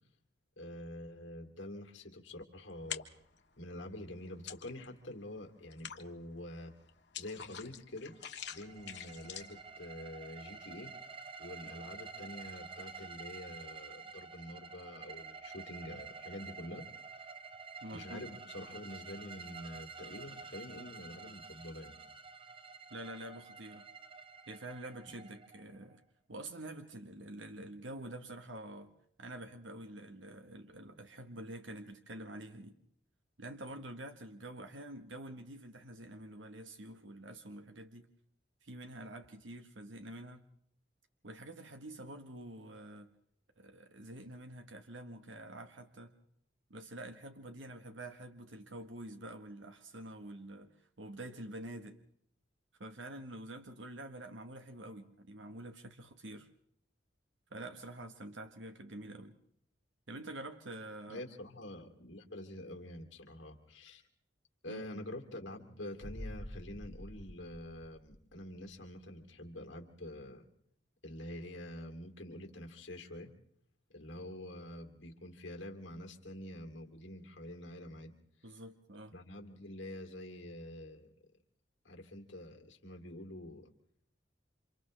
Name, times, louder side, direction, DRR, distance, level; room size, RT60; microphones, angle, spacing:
voice 1, 0.6-3.1 3.6-6.7 7.2-8.1 8.5-11.0 11.4-16.9 17.1-17.3 17.9-22.0 61.1-64.0 64.6-70.4 71.0-73.3 73.9-78.5 79.1-81.1 81.8-83.7, left 1 dB, 85° left, 4 dB, 2.9 m, -47 dB
sound 1, 2.7-3.4 3.8-5.1 5.4-9.7, left 9 dB, 65° left, 1.5 m, -46 dB
sound 2, 8.1-26.0, right 5 dB, 30° right, 1.0 m, -50 dB
voice 2, 17.8-18.3 22.9-23.8 24.5-26.0 26.3-28.9 29.2-32.8 33.4-38.1 38.6-40.4 41.2-43.1 43.6-46.2 46.7-52.0 52.8-56.5 57.5-59.4 60.1-61.2 64.7-65.0 78.4-79.1, right 1 dB, 80° right, 6 dB, 1.3 m, -47 dB
sound 3, 66.0-68.7 69.0-69.1, equal, ahead, 0.9 m, -47 dB
29.0 x 27.5 x 3.3 m, 0.69 s
head